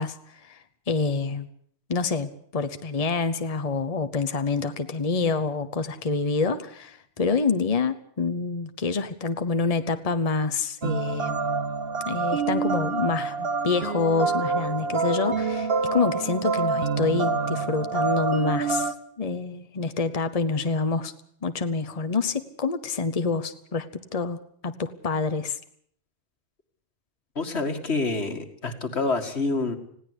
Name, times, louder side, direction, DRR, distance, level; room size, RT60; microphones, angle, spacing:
voice 1, 0.0-1.5 1.9-11.4 12.1-21.1 21.4-23.9 24.1-25.6, left 4 dB, 35° left, 10 dB, 1.1 m, -27 dB
sound 1, 10.8-18.9, right 4 dB, 65° right, 1.3 m, -27 dB
voice 2, 27.4-29.8, left 3 dB, 80° left, 6 dB, 2.4 m, -27 dB
20.5 x 16.5 x 8.1 m, 0.62 s
omnidirectional pair, 1.1 m